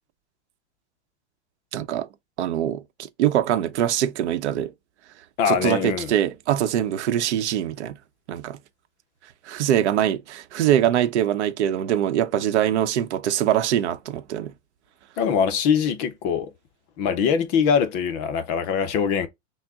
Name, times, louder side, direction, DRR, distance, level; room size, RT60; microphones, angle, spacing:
voice 1, 1.7-2.1 2.4-4.7 5.5-8.0 8.3-8.6 9.4-14.5, right 11 dB, 80° right, 0.8 m, -23 dB
voice 2, 5.4-6.1 15.2-16.5 17.0-19.3, left 7 dB, 25° left, 0.5 m, -22 dB
6.1 x 2.1 x 3.5 m
supercardioid pair, 160°, 34 cm